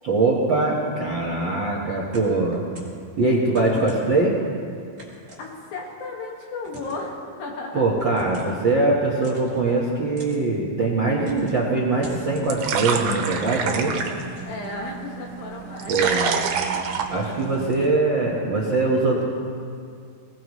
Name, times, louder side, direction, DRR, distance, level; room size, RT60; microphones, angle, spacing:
voice 1, 0.0-2.6 3.2-4.3 7.7-13.9 15.9-16.4 17.1-19.2, right 3 dB, 55° right, -3 dB, 1.4 m, -22 dB
sound 1, 2.1-3.0 3.5-4.2 5.0-5.9 6.6-7.1 8.0-8.6 9.2-9.7 10.2-10.4 11.2-11.6 12.0-12.5 12.9-14.8, equal, 20° right, 3.3 m, -41 dB
voice 2, 5.4-7.9 14.5-16.0, left 3 dB, 70° left, -1 dB, 3.6 m, -34 dB
sound 2, 11.9-17.9, right 6 dB, 85° right, 3.0 m, -28 dB
21.0 x 18.5 x 3.2 m, 2.3 s
omnidirectional pair, 4.3 m